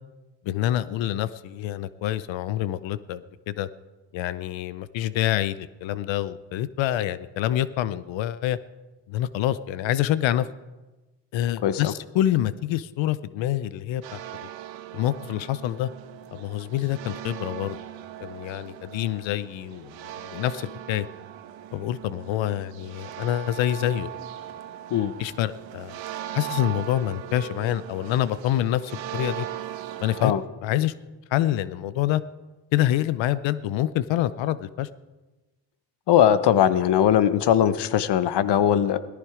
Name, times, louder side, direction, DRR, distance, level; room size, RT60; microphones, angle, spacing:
voice 1, 0.4-3.7 4.1-8.6 9.1-10.5 11.3-14.5 14.9-15.9 16.3-17.8 18.2-21.1 21.7-24.1 25.2-26.0 26.3-29.5 30.0-30.3 30.6-30.9 31.3-32.2 32.7-34.9, left 12 dB, 85° left, 16 dB, 0.7 m, -26 dB
voice 2, 11.6-11.9 24.9-25.1 30.2-30.4 36.1-39.0, left 10 dB, 65° left, 14 dB, 1.0 m, -20 dB
sound 1, 14.0-30.3, right 12 dB, 85° right, 1.3 m, -39 dB
17.5 x 14.0 x 4.9 m, 1.1 s
cardioid pair, 75°, 44 cm